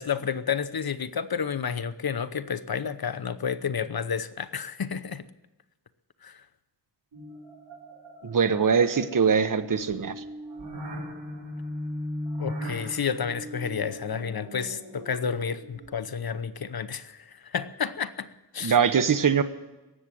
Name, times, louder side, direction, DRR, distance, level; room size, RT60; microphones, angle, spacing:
voice 1, 0.0-5.2 6.2-6.4 12.4-18.3 18.5-18.8, left 7 dB, 60° left, 13 dB, 0.9 m, -31 dB
sound 1, 7.1-16.2, equal, 80° right, 4.5 m, -39 dB
voice 2, 8.2-10.1 18.6-19.4, right 6 dB, 50° right, 11 dB, 1.0 m, -22 dB
17.5 x 7.5 x 9.9 m, 1.1 s
wide cardioid pair, 60°, 42 cm